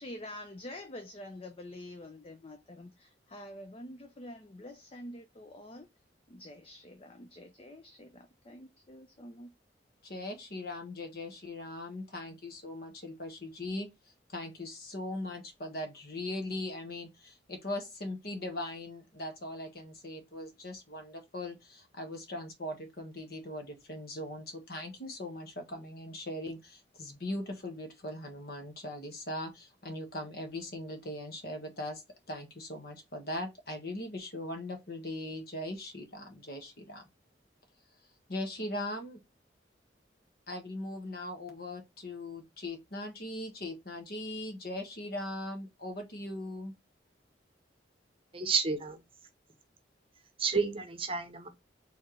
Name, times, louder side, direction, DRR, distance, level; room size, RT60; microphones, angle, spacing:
voice 1, 0.0-5.9 6.3-9.5, left 1 dB, 30° left, 0.5 m, -47 dB
voice 2, 10.0-13.9 14.3-32.0 32.3-37.0 38.3-39.2 40.5-46.7, left 1 dB, 55° left, 1.4 m, -40 dB
voice 3, 48.3-49.0 50.4-51.5, right 5 dB, 30° right, 0.8 m, -30 dB
4.3 x 3.6 x 3.1 m
head